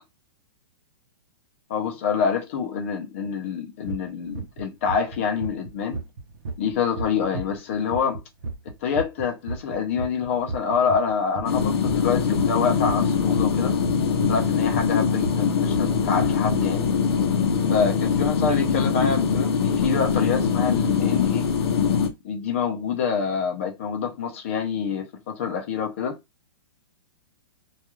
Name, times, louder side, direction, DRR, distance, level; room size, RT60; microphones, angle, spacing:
voice 1, 1.7-6.0 6.6-8.2 8.8-13.8 14.3-16.9 17.7-21.5 22.2-26.2, left 6 dB, 30° left, 0.5 m, -26 dB
sound 1, 3.8-4.0 4.3-4.6 4.9-11.1 11.4-16.3, right 3 dB, 50° right, 0.6 m, -33 dB
sound 2, 11.5-22.1, left 6 dB, 90° left, 0.6 m, -22 dB
2.3 x 2.3 x 2.9 m
hypercardioid pair, 175°, 13 cm